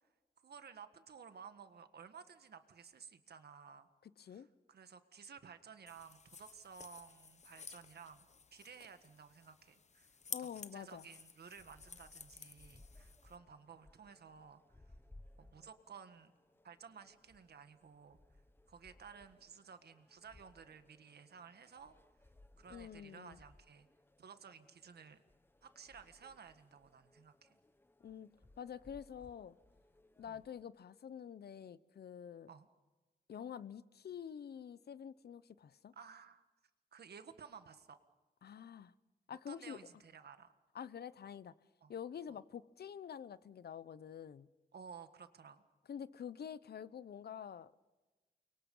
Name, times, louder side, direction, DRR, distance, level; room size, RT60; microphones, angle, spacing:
voice 1, 0.4-3.9 4.3-8.3 8.5-14.6 15.4-16.3 16.6-18.2 18.7-21.9 22.6-23.9 24.2-25.2 25.6-27.6 30.3-30.4 32.5-32.7 35.9-36.4 36.9-38.0 39.5-40.5 41.8-41.9 42.3-42.4 44.7-45.6, right 6 dB, 70° right, 1.7 m, -55 dB
voice 2, 4.0-4.5 10.3-11.1 22.7-23.4 28.0-29.6 30.2-32.5 33.3-35.9 38.4-38.9 39.3-39.8 40.7-41.5 41.9-44.5 45.9-47.7, left 8 dB, 70° left, 0.8 m, -48 dB
sound 1, 5.9-13.4, left 5 dB, 40° left, 0.9 m, -53 dB
sound 2, 11.6-30.6, left 1 dB, 15° left, 0.9 m, -64 dB
29.5 x 24.0 x 5.6 m
wide cardioid pair, 130°, 17 cm